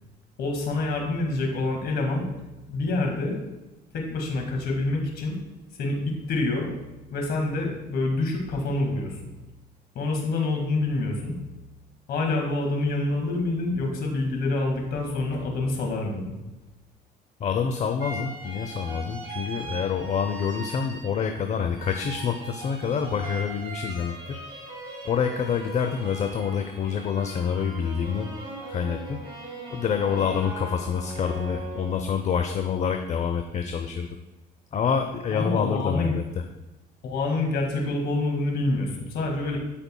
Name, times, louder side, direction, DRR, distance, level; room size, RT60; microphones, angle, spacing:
voice 1, 0.4-2.3 2.7-3.4 3.9-5.4 5.8-6.0 6.3-6.7 7.1-9.3 10.0-11.4 12.1-16.4 35.3-36.2 37.0-39.6, left 2 dB, 70° left, 1 dB, 2.0 m, -27 dB
voice 2, 17.4-24.4 25.1-28.3 28.7-29.2 29.7-34.1 34.7-36.2, left 7 dB, 45° left, 6 dB, 0.6 m, -27 dB
sound 1, 18.0-21.4 21.7-32.4, right 2 dB, 30° right, 2.5 m, -39 dB
13.0 x 5.3 x 2.3 m, 1.1 s
cardioid pair, 110°, 17 cm